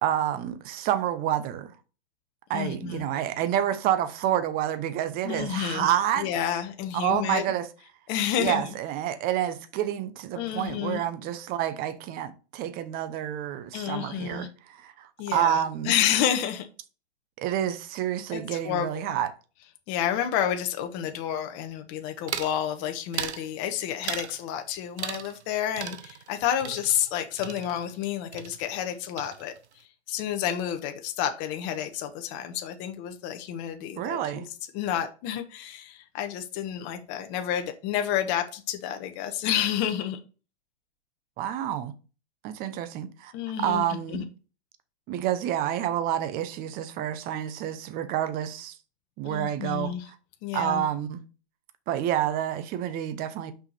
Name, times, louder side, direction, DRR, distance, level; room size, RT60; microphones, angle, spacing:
voice 1, 0.0-1.7 2.5-6.3 6.9-7.7 8.4-15.9 17.4-19.3 34.0-34.5 41.4-41.9 42.4-43.3 43.6-44.3 45.1-48.8 49.2-50.2 50.5-51.2 51.9-53.5, right 11 dB, 25° right, 0.8 m, -28 dB
voice 2, 2.5-3.0 5.2-5.9 6.2-7.4 8.1-8.7 10.4-11.0 13.7-14.5 15.2-16.7 18.3-19.2 19.9-34.4 34.7-40.2 43.3-44.2 49.2-50.1 50.4-50.8, left 10 dB, 35° left, 1.1 m, -30 dB
sound 1, 22.3-22.6 23.1-23.5 24.0-24.4 25.0-25.5 25.8-28.1 28.3-28.9 29.2-29.7, right 8 dB, 85° right, 0.8 m, -37 dB
5.9 x 5.0 x 4.2 m
hypercardioid pair, 130°, 33 cm